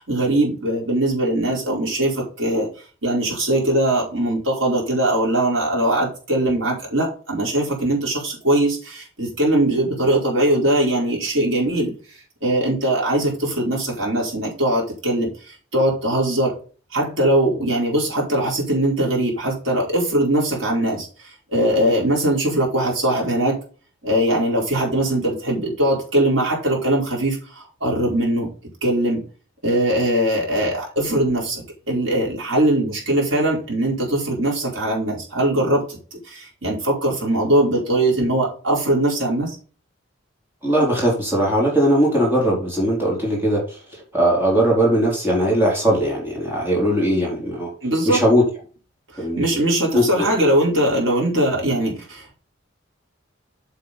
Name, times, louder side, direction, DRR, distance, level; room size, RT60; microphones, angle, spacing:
voice 1, 0.0-2.7 3.0-11.9 12.4-16.5 16.9-23.6 24.0-28.5 28.8-29.2 29.6-39.6 47.8-48.2 49.1-52.3, right 1 dB, 80° right, -3 dB, 4.6 m, -21 dB
voice 2, 40.6-47.7 48.1-48.4 49.2-49.4 49.9-50.3, equal, 10° right, -4 dB, 3.9 m, -19 dB
7.9 x 6.9 x 4.1 m, 0.38 s
head